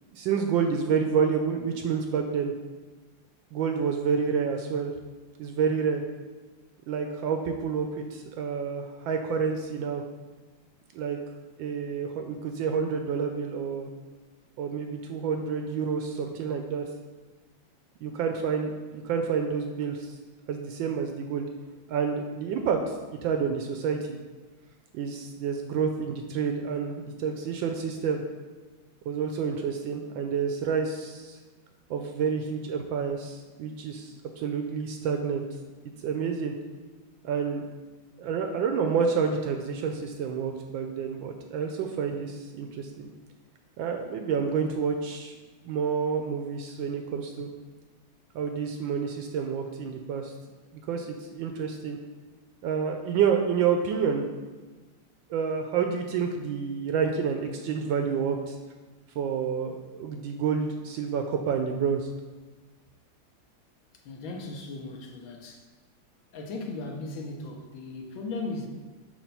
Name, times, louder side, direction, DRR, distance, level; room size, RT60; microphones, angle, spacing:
voice 1, 0.1-2.5 3.5-4.9 5.4-6.0 6.9-10.0 10.9-11.2 11.6-13.9 14.6-16.8 18.0-20.1 20.5-21.5 21.9-24.2 24.9-28.2 29.1-31.4 31.9-35.4 36.0-36.5 37.2-37.6 38.2-43.1 43.8-45.4 45.6-47.5 48.3-50.3 50.9-52.0 52.6-54.2 55.3-58.6 59.2-62.1, right 6 dB, 75° right, 4 dB, 1.2 m, -29 dB
voice 2, 64.0-65.7 66.3-68.7, left 3 dB, 70° left, 2 dB, 1.6 m, -37 dB
6.6 x 2.9 x 5.4 m, 1.3 s
omnidirectional pair, 2.3 m